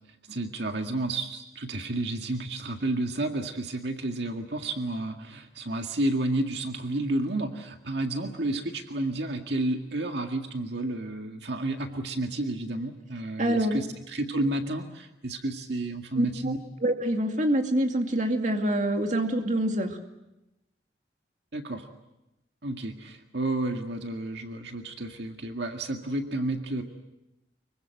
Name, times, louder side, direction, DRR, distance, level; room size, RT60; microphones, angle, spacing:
voice 1, 0.3-16.6 21.5-21.9 22.6-26.8, right 2 dB, 70° right, 4 dB, 2.0 m, -31 dB
voice 2, 13.4-13.8 16.2-16.3 16.8-20.0, right 1 dB, 40° right, 4 dB, 2.4 m, -25 dB
26.0 x 23.5 x 7.8 m, 0.93 s
head